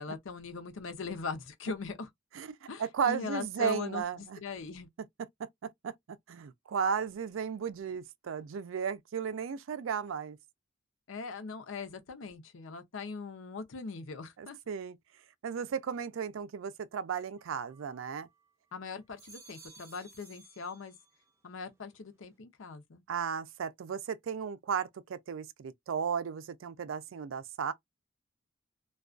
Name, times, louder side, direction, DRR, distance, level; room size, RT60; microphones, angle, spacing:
voice 1, 0.0-2.1 2.7-4.9 11.1-14.6 18.7-20.9 21.4-23.0, left 4 dB, 85° left, 0.6 m, -40 dB
voice 2, 2.3-4.4 5.4-5.9 6.3-10.4 14.4-15.0 15.4-18.3 23.1-27.7, right 7 dB, 90° right, 0.4 m, -35 dB
sound 1, 17.4-18.5 19.0-21.4 21.7-22.3, right 4 dB, 15° right, 0.5 m, -57 dB
2.3 x 2.2 x 2.4 m
head